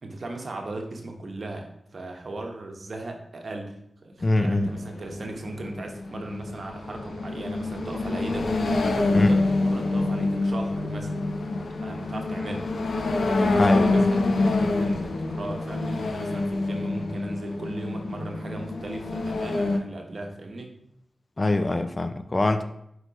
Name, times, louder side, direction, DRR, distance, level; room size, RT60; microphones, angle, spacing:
voice 1, 0.0-11.2 11.8-12.7 13.2-20.7, right 2 dB, 60° right, 2 dB, 1.0 m, -37 dB
sound 1, 4.2-19.8, left 2 dB, 80° left, 0.6 m, -26 dB
voice 2, 4.2-4.7 9.1-9.4 13.6-14.1 21.4-22.6, left 2 dB, 30° left, 9 dB, 0.4 m, -23 dB
4.7 x 4.4 x 4.9 m, 0.75 s
wide cardioid pair, 105°, 0 cm